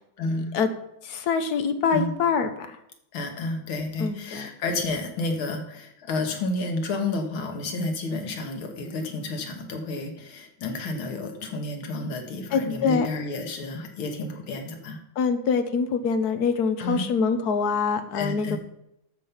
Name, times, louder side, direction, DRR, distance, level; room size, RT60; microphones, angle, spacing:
voice 1, 0.2-0.6 1.9-2.1 3.1-15.0 16.8-17.1 18.1-18.6, left 2 dB, 85° left, 4 dB, 2.3 m, -30 dB
voice 2, 1.0-2.8 4.0-4.5 12.5-13.1 15.2-18.6, left 5 dB, 60° left, 9 dB, 1.3 m, -24 dB
13.0 x 5.3 x 5.7 m, 0.80 s
omnidirectional pair, 2.2 m